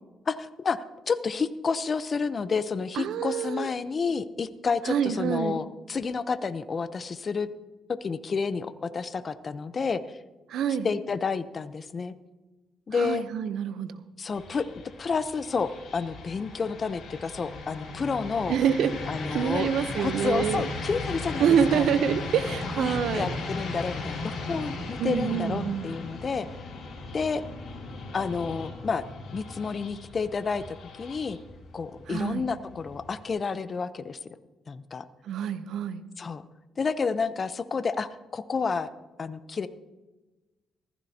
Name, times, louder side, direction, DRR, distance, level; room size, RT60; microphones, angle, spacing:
voice 1, 0.3-7.5 7.9-10.0 10.8-12.1 12.9-13.2 14.2-14.7 15.0-18.6 19.1-19.7 20.0-21.8 22.6-26.6 27.1-27.4 28.1-29.0 29.3-31.4 31.7-34.2 34.7-35.0 36.2-36.4 36.8-38.9 39.2-39.7, left 5 dB, 40° left, 13 dB, 0.7 m, -30 dB
voice 2, 3.0-3.7 4.9-5.6 10.5-10.9 12.9-14.0 18.5-18.9 19.3-20.6 21.4-23.3 25.0-25.9 32.1-32.5 35.2-36.0, right 8 dB, 75° right, 12 dB, 0.7 m, -26 dB
sound 1, 14.3-33.3, left 3 dB, 65° left, 4.8 m, -38 dB
sound 2, 20.3-25.7, left 2 dB, 90° left, 3.5 m, -39 dB
15.0 x 14.5 x 2.8 m, 1.2 s
cardioid pair, 90°, 0 cm